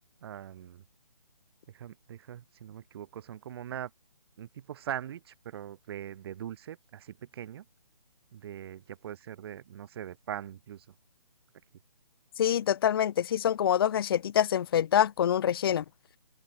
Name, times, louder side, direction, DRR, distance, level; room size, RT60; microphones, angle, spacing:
voice 1, 0.2-0.8 1.7-3.9 4.4-7.6 8.3-10.8, right 10 dB, 35° right, 4.2 m, -41 dB
voice 2, 12.4-15.8, left 10 dB, 35° left, 0.8 m, -25 dB
open air
figure-of-eight pair, 155°, 21 cm